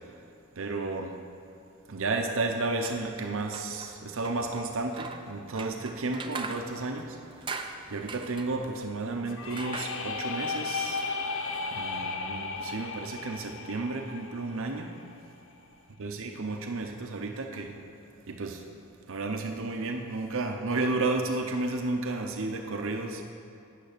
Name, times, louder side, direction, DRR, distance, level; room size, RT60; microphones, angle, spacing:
voice 1, 0.6-1.2 1.9-7.2 7.9-11.0 11.7-15.0 16.0-17.8 18.3-18.6 19.1-23.2, right 3 dB, 65° right, 4 dB, 0.7 m, -32 dB
sound 1, 2.7-12.7, right 4 dB, 20° right, 0.6 m, -44 dB
sound 2, 9.3-15.1, left 4 dB, 60° left, 0.7 m, -35 dB
9.5 x 9.0 x 6.7 m, 2.5 s
head